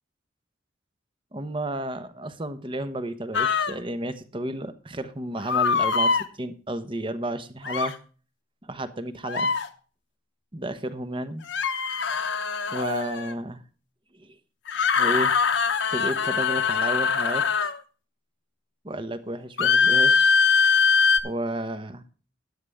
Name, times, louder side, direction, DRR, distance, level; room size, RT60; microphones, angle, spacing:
voice 1, 1.3-7.9 8.7-9.5 10.5-11.4 12.7-13.6 14.1-14.3 15.0-15.3 15.9-17.4 18.8-20.3 21.2-22.0, right 1 dB, 25° right, 11 dB, 1.0 m, -32 dB
sound 1, 3.3-3.8 5.5-6.2 7.6-7.9 9.2-9.7 11.5-13.3 14.7-17.8 19.6-21.2, left 5 dB, 65° left, 1.1 m, -22 dB
13.0 x 9.9 x 3.6 m, 0.38 s
head